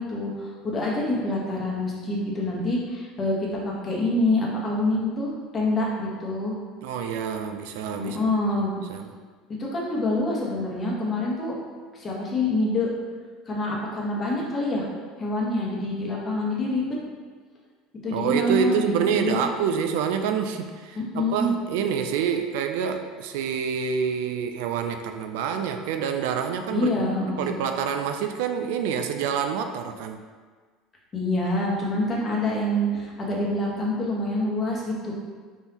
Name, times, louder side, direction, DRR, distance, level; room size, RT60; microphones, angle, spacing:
voice 1, 0.0-6.5 8.0-8.8 9.5-11.5 11.9-12.9 13.5-14.8 15.2-17.0 18.0-19.5 20.9-21.5 26.7-27.6 31.1-35.1, left 1 dB, 30° left, -3 dB, 1.1 m, -26 dB
voice 2, 6.8-8.2 8.9-9.1 18.1-26.9 27.4-30.2, right 7 dB, 80° right, 6 dB, 0.3 m, -27 dB
4.4 x 3.5 x 2.9 m, 1.5 s
supercardioid pair, 125°, 0 cm